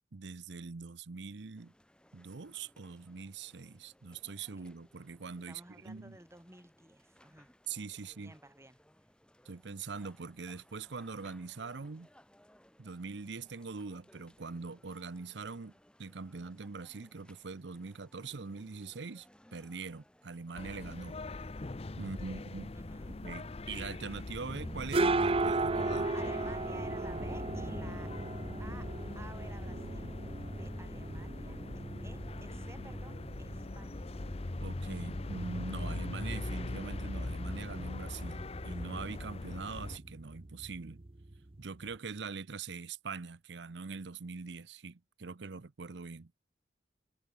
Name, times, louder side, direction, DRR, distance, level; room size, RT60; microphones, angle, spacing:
voice 1, 0.1-1.7 2.1-6.2 7.7-8.3 9.5-12.1 12.8-15.7 16.0-19.3 19.5-21.2 22.0-22.7 23.1-26.1 34.6-41.0 41.6-46.3, right 4 dB, 65° right, 0.7 m, -43 dB
sound 1, 1.5-20.9, equal, 5° left, 3.6 m, -64 dB
voice 2, 5.5-7.5 8.0-8.8 22.0-22.5 22.7-23.2 26.1-28.3 28.6-30.1 30.4-34.1, right 1 dB, 15° right, 3.8 m, -54 dB
sound 2, 20.5-40.0, left 2 dB, 35° left, 0.7 m, -41 dB
sound 3, 24.5-42.0, right 2 dB, 30° right, 0.8 m, -37 dB
head